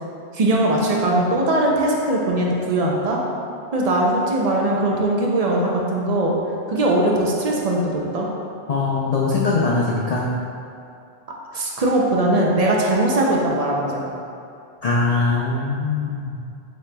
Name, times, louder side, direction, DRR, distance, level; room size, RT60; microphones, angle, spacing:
voice 1, 0.3-3.2 3.7-6.3 6.7-8.3 11.5-14.1, right 1 dB, 75° right, -2 dB, 0.3 m, -20 dB
voice 2, 8.7-10.3 14.8-16.4, left 3 dB, 85° left, -5 dB, 0.3 m, -21 dB
7.5 x 3.0 x 2.2 m, 2.5 s
omnidirectional pair, 1.3 m